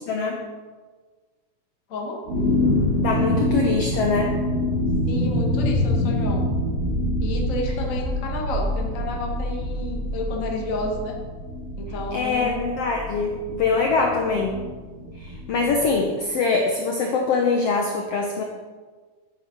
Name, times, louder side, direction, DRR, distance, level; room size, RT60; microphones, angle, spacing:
voice 1, 0.1-0.4 2.9-4.4 12.1-14.6 15.1-18.4, left 4 dB, 70° left, 1 dB, 1.5 m, -23 dB
voice 2, 1.9-2.2 5.1-6.5 7.2-11.1 11.8-12.5, left 2 dB, 45° left, 0 dB, 1.0 m, -31 dB
sound 1, 2.3-15.9, left 1 dB, 35° right, 3.3 m, -26 dB
9.5 x 9.0 x 4.6 m, 1.4 s
omnidirectional pair, 3.8 m